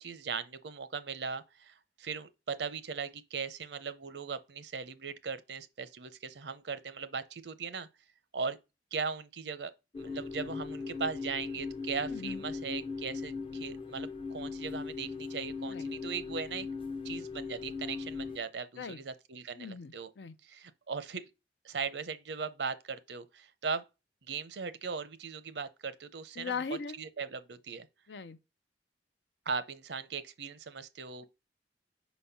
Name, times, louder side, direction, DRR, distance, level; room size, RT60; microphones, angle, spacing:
voice 1, 0.0-7.9 8.3-8.6 8.9-16.7 17.0-20.1 20.4-21.3 21.6-23.9 24.3-26.5 26.9-27.9 29.5-31.3, right 5 dB, 80° right, 0.7 m, -39 dB
sound 1, 9.9-18.4, left 4 dB, 30° left, 0.5 m, -39 dB
voice 2, 12.1-12.4 15.7-15.9 18.8-19.0 19.6-20.3 26.4-27.0 28.1-28.4, left 5 dB, 80° left, 0.6 m, -39 dB
5.4 x 4.2 x 5.6 m
head